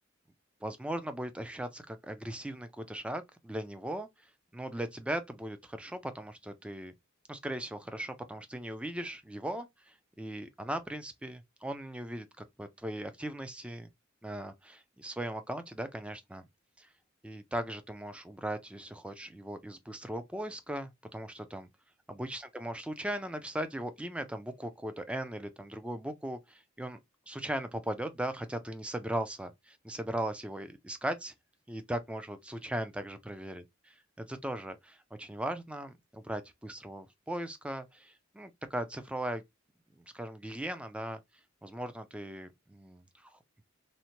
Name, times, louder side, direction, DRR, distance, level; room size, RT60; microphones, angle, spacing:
voice 1, 0.6-4.1 4.5-6.9 7.3-13.9 14.2-16.5 16.8-16.9 17.2-21.7 22.1-27.0 27.3-31.3 31.7-33.6 34.2-39.4 40.1-41.2 41.6-43.4, right 1 dB, 5° right, 0.3 m, -38 dB
2.7 x 2.1 x 2.8 m
head